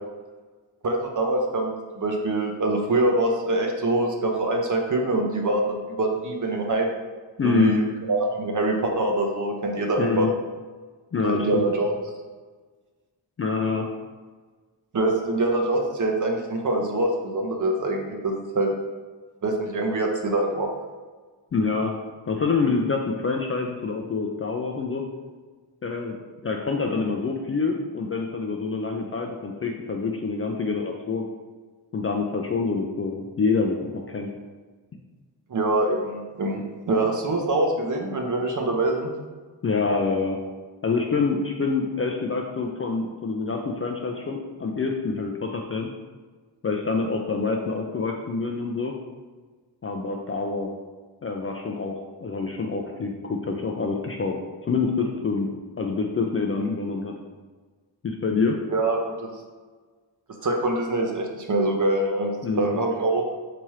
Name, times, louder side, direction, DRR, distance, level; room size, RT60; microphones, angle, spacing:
voice 1, 0.8-6.9 7.4-7.8 8.1-10.3 11.2-11.9 14.9-18.7 19.4-20.7 35.5-39.1 58.7-59.3 60.4-63.4, right 2 dB, 40° right, 2 dB, 0.7 m, -24 dB
voice 2, 7.4-7.8 10.0-10.3 11.1-11.7 13.4-13.9 21.5-21.9 22.3-25.0 25.8-26.2 26.4-31.2 31.9-34.3 39.6-40.4 40.8-45.9 46.6-48.9 49.8-50.7 51.2-54.4 54.6-55.5 55.8-57.1 58.0-58.6 62.4-62.8, left 4 dB, 30° left, 1 dB, 0.4 m, -26 dB
3.5 x 2.9 x 3.1 m, 1.4 s
supercardioid pair, 45°, 48 cm